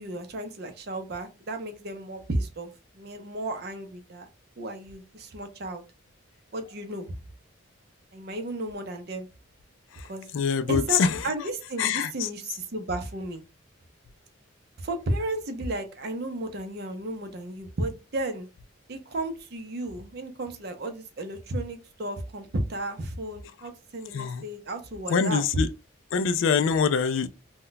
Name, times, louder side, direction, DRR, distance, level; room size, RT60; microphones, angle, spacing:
voice 1, 0.0-4.3 4.6-5.8 6.5-7.2 8.1-9.3 10.1-10.3 10.7-13.4 14.8-18.5 18.9-25.4, right 1 dB, 50° right, 0.5 m, -33 dB
voice 2, 9.9-11.3 11.8-12.3 24.1-24.4 25.1-25.7 26.1-27.3, left 6 dB, 70° left, 0.3 m, -25 dB
2.2 x 2.1 x 3.8 m
head